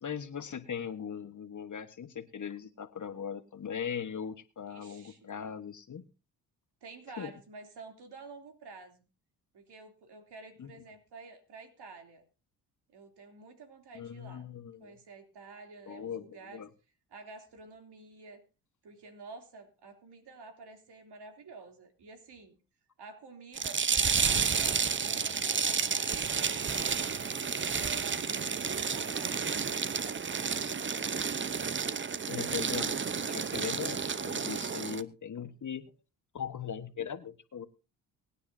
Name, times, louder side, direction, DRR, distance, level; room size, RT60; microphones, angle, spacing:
voice 1, 0.0-6.0 7.2-7.3 10.6-10.7 13.9-14.9 15.9-16.7 32.3-33.0 33.3-35.9 36.3-37.7, left 7 dB, 40° left, 11 dB, 1.3 m, -39 dB
voice 2, 4.7-5.2 6.8-9.1 9.5-12.2 12.9-14.5 14.8-16.6 17.1-18.4 18.8-22.6 23.0-30.7, right 4 dB, 60° right, 5 dB, 3.1 m, -50 dB
sound 1, 23.6-35.0, right 6 dB, 25° right, 0.8 m, -31 dB
24.0 x 9.9 x 2.7 m, 0.32 s
supercardioid pair, 55°, 45 cm